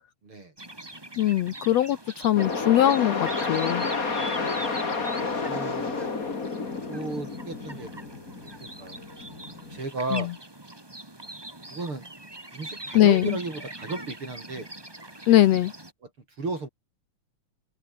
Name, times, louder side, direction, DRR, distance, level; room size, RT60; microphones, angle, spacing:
sound 1, 0.6-15.9, right 1 dB, 10° right, 1.6 m, -42 dB
voice 1, 1.2-3.9 10.1-10.2 12.9-13.4 15.3-15.7, left 13 dB, 70° left, 1.6 m, -21 dB
sound 2, 2.4-9.8, left 4 dB, 25° left, 2.8 m, -31 dB
voice 2, 5.0-6.0 6.9-8.2 8.6-9.0 9.7-10.3 11.7-12.1 12.5-14.7 16.0-16.1 16.4-16.7, right 3 dB, 40° right, 5.1 m, -34 dB
open air
omnidirectional pair, 3.9 m